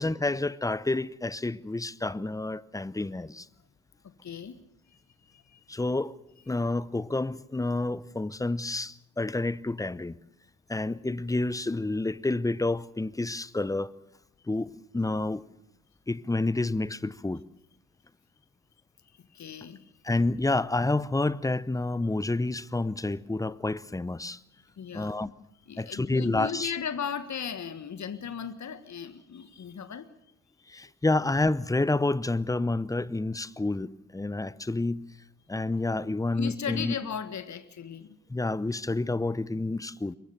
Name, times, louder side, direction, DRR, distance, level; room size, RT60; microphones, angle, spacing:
voice 1, 0.0-3.5 5.7-6.2 6.5-10.2 10.7-13.9 14.5-15.4 16.1-17.4 20.0-24.4 24.9-25.3 25.8-26.7 30.7-35.0 35.5-36.9 38.3-40.1, left 2 dB, 10° left, 0.7 m, -29 dB
voice 2, 4.0-4.6 4.9-5.8 19.2-19.8 24.8-25.1 25.7-30.1 30.7-30.9 36.3-38.2, left 7 dB, 40° left, 1.7 m, -37 dB
23.0 x 20.0 x 6.9 m
figure-of-eight pair, 45°, 45 cm